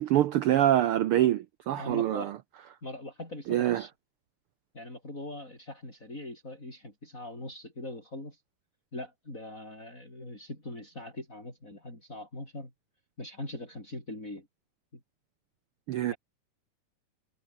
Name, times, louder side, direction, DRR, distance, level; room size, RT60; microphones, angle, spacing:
voice 1, 0.0-2.3 3.5-3.8 15.9-16.1, right 12 dB, 90° right, 1.2 m, -25 dB
voice 2, 1.7-2.3 2.8-3.9 4.7-8.4 8.9-12.7 13.2-14.5 16.1-16.2, left 1 dB, 25° left, 8.4 m, -41 dB
omnidirectional pair, 3.4 m